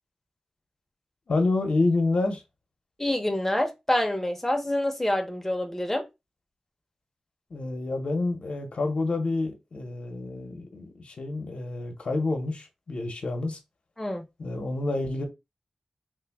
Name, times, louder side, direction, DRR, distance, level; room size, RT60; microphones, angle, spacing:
voice 1, 1.3-2.4 7.5-13.6 14.4-15.2, left 2 dB, 70° left, 0.8 m, -28 dB
voice 2, 3.0-6.0 14.0-14.2, left 1 dB, 10° left, 0.7 m, -27 dB
3.3 x 2.2 x 3.4 m
wide cardioid pair, 80°, 2 cm